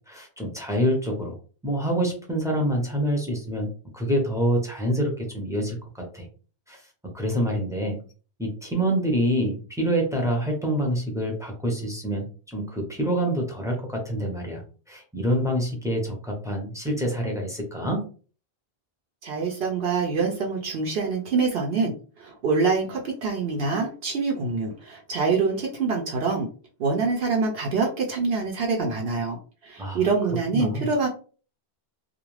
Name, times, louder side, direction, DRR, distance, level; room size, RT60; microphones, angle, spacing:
voice 1, 0.1-1.4 1.6-6.2 6.7-6.8 7.1-8.0 8.4-14.6 14.9-18.0 29.8-30.0 30.5-30.9, equal, 5° right, 0 dB, 0.6 m, -26 dB
voice 2, 19.2-26.5 26.8-29.4 29.6-31.1, right 4 dB, 70° right, 0 dB, 0.8 m, -25 dB
2.5 x 2.1 x 3.1 m, 0.39 s
omnidirectional pair, 1.1 m